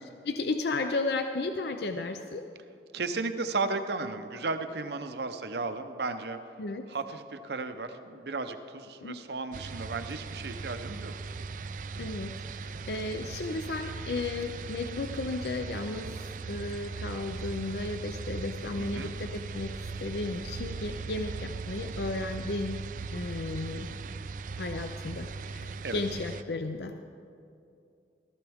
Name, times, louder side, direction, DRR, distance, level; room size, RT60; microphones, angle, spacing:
voice 1, 0.0-2.5 6.6-6.8 9.0-9.2 12.0-16.1 16.5-19.7 20.0-22.8 23.1-23.9 24.6-27.0, left 3 dB, 70° left, 6 dB, 0.5 m, -34 dB
voice 2, 2.9-6.4 6.9-11.1 18.8-19.1 25.8-26.0, right 3 dB, 70° right, 8 dB, 0.7 m, -34 dB
sound 1, 9.5-26.4, right 4 dB, 45° right, 0.3 m, -39 dB
15.0 x 14.0 x 3.5 m, 2.5 s
head